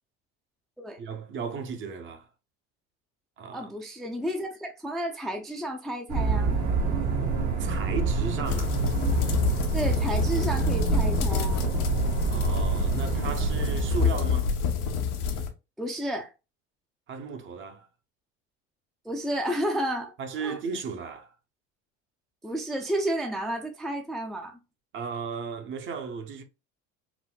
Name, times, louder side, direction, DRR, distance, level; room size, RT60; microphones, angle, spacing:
voice 1, 1.0-2.3 3.4-3.7 7.6-8.8 12.3-14.5 17.1-17.9 20.2-21.3 24.9-26.4, right 5 dB, 40° right, 0.6 m, -35 dB
voice 2, 3.5-6.6 9.7-11.7 15.8-16.3 19.1-20.1 20.4-20.6 22.4-24.6, right 1 dB, ahead, 0.3 m, -31 dB
sound 1, 6.1-14.1, right 4 dB, 80° right, 1.2 m, -27 dB
sound 2, 8.4-15.5, left 7 dB, 80° left, 0.8 m, -28 dB
4.0 x 2.0 x 2.2 m
supercardioid pair, 115°, 31 cm